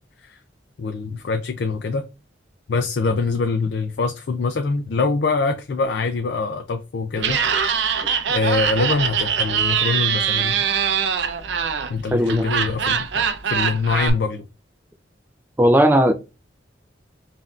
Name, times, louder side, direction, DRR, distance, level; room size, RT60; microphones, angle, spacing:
voice 1, 0.8-2.0 2.7-7.4 8.3-10.7 11.9-14.5, left 4 dB, 60° left, 0.4 m, -24 dB
Laughter, 7.2-14.1, right 7 dB, 65° right, 0.5 m, -23 dB
voice 2, 12.1-12.5 15.6-16.1, equal, 10° right, 0.3 m, -16 dB
5.5 x 2.6 x 2.4 m
head